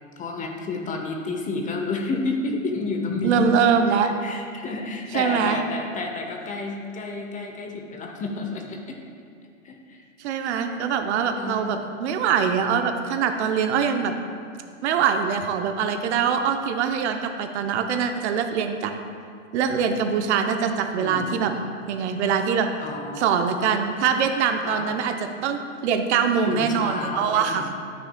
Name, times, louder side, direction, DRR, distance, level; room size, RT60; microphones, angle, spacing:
voice 1, 0.2-3.5 4.0-9.0 9.6-10.0 11.4-12.0 21.0-21.6 22.8-23.7 24.6-25.0 26.5-27.8, left 3 dB, 20° left, 2 dB, 0.7 m, -31 dB
voice 2, 3.2-4.1 5.1-5.6 10.2-14.1 14.8-18.9 19.5-21.5 21.9-22.7 23.2-25.1 25.4-27.6, right 7 dB, 60° right, 6 dB, 0.7 m, -23 dB
13.0 x 6.1 x 2.2 m, 2.3 s
hypercardioid pair, 115°, 39 cm